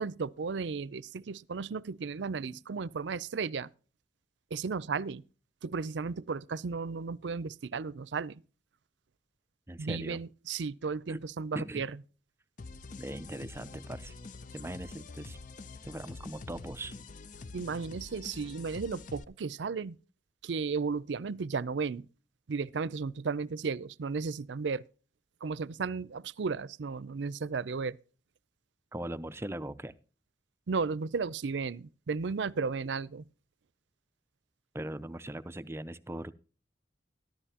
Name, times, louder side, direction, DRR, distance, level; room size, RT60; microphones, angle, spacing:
voice 1, 0.0-3.7 4.5-5.2 5.6-8.4 9.8-12.0 17.5-20.0 20.4-22.1 22.5-24.8 25.4-28.0 30.7-33.2, right 5 dB, 80° right, 0.5 m, -34 dB
voice 2, 9.7-10.2 11.1-11.2 11.5-11.8 13.0-14.1 14.5-15.4 15.9-17.0 28.9-30.0 34.7-36.3, right 1 dB, 15° right, 0.5 m, -40 dB
sound 1, 12.6-19.2, left 3 dB, 45° left, 0.6 m, -46 dB
14.0 x 12.0 x 2.9 m
head